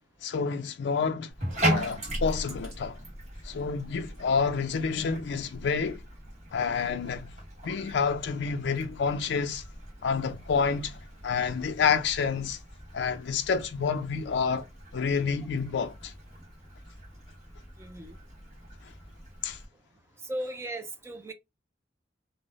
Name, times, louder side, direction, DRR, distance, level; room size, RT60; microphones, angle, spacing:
voice 1, 0.2-1.3 1.7-3.0 3.4-6.0 6.5-7.3 7.6-9.6 10.0-12.6 12.9-14.7 14.9-16.1 19.4-19.6, left 5 dB, 65° left, 0.4 m, -28 dB
Bathtub (filling or washing), 1.3-19.6, right 1 dB, 40° right, 1.1 m, -38 dB
voice 2, 17.8-18.2 20.2-21.3, right 1 dB, 15° right, 0.4 m, -36 dB
2.3 x 2.0 x 3.0 m
head